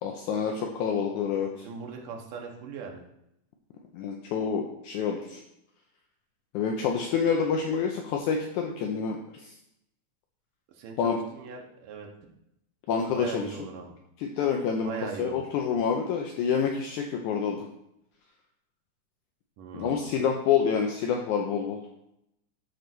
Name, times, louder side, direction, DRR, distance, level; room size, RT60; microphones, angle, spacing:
voice 1, 0.0-1.7 3.9-5.4 6.5-9.5 11.0-11.2 12.9-13.6 14.2-14.9 15.2-17.7 19.7-21.8, left 6 dB, 75° left, 2 dB, 2.1 m, -28 dB
voice 2, 1.6-3.0 10.7-12.1 13.1-13.9 14.8-15.4 19.6-20.1, right 5 dB, 75° right, 1 dB, 2.9 m, -39 dB
12.0 x 4.0 x 6.1 m, 0.80 s
omnidirectional pair, 3.8 m